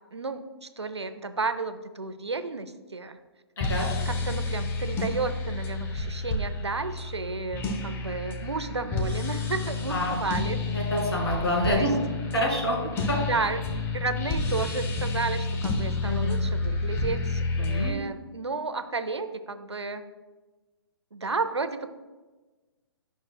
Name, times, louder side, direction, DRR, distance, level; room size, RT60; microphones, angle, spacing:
voice 1, 0.1-3.2 4.1-10.6 11.7-11.9 13.2-13.6 13.9-20.0 21.1-21.9, right 4 dB, 80° right, 10 dB, 0.6 m, -32 dB
voice 2, 3.6-3.9 9.9-10.2 10.7-11.9 12.3-12.8 13.1-13.2 16.0-16.4 17.6-18.0, left 1 dB, 70° left, -1 dB, 2.5 m, -27 dB
sound 1, 3.6-17.9, left 3 dB, 15° left, 0.7 m, -30 dB
11.0 x 6.0 x 2.2 m, 1.2 s
figure-of-eight pair, 125°, 14 cm